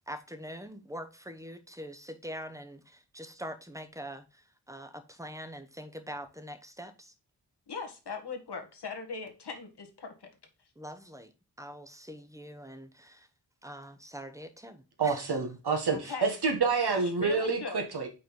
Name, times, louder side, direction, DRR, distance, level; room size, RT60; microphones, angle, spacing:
voice 1, 0.1-4.2 4.7-7.1 10.8-11.3 11.6-13.3 13.6-15.2 16.1-16.2, equal, 5° right, 1.1 m, -43 dB
voice 2, 7.7-10.3 16.0-16.3 17.0-17.8, left 4 dB, 70° left, 1.7 m, -39 dB
voice 3, 15.0-18.1, right 4 dB, 65° right, 1.7 m, -28 dB
5.4 x 4.3 x 5.3 m
cardioid pair, 40°, 42 cm